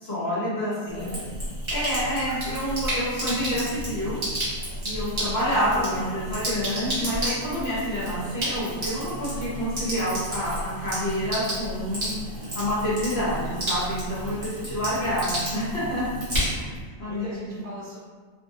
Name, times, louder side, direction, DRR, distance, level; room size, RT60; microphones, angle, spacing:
voice 1, 0.0-1.1 1.7-4.2 4.8-12.1 12.5-16.6 17.0-17.6, equal, 55° left, -9 dB, 1.0 m, -28 dB
voice 2, 0.6-1.4 3.2-3.8 5.5-6.2 14.2-14.7 16.5-18.0, equal, 65° right, -6 dB, 0.9 m, -41 dB
Sink (filling or washing), 0.9-16.8, right 1 dB, 45° right, 1.2 m, -32 dB
2.6 x 2.1 x 2.7 m, 1.5 s
omnidirectional pair, 1.4 m